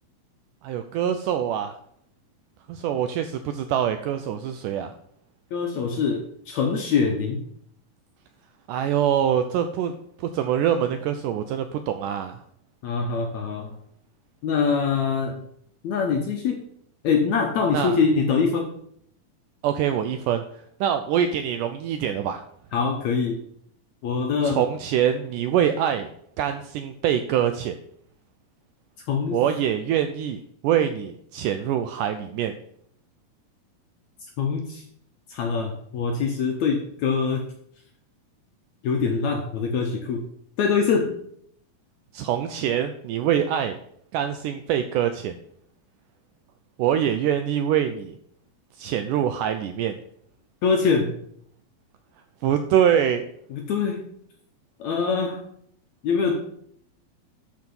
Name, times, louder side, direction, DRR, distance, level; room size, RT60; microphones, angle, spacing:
voice 1, 0.6-1.7 2.7-4.9 8.7-9.9 10.3-12.4 17.7-18.0 19.6-20.4 20.8-22.4 24.4-26.1 26.4-27.8 29.3-32.6 42.1-43.8 44.1-45.4 46.8-48.2 48.8-50.0 52.4-53.2, right 9 dB, 80° right, 8 dB, 1.9 m, -24 dB
voice 2, 5.5-7.4 12.8-13.7 14.4-15.4 15.8-16.6 17.0-18.7 22.7-23.4 24.0-24.6 29.1-29.4 34.4-34.8 35.3-37.5 38.8-40.3 40.6-41.2 50.6-51.2 53.5-54.0 54.8-55.4 56.0-56.5, left 5 dB, 70° left, 3 dB, 1.7 m, -24 dB
12.0 x 4.9 x 5.4 m, 0.68 s
omnidirectional pair, 4.2 m